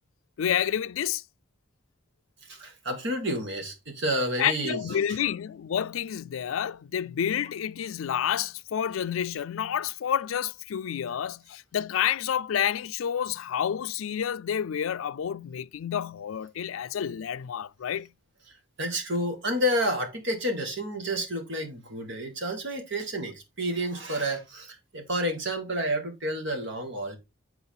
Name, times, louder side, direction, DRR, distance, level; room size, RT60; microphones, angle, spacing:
voice 1, 0.4-1.2 4.4-18.1, left 9 dB, 80° left, 0.4 m, -29 dB
voice 2, 2.4-5.3 18.5-27.2, equal, 60° right, 2.2 m, -30 dB
8.7 x 4.4 x 3.9 m
head